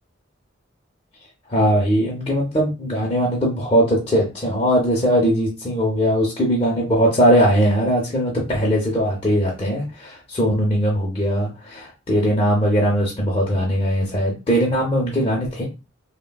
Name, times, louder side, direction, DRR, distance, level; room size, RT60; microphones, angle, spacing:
voice 1, 1.5-15.7, equal, 25° left, -4 dB, 0.5 m, -20 dB
3.2 x 2.1 x 2.2 m, 0.28 s
head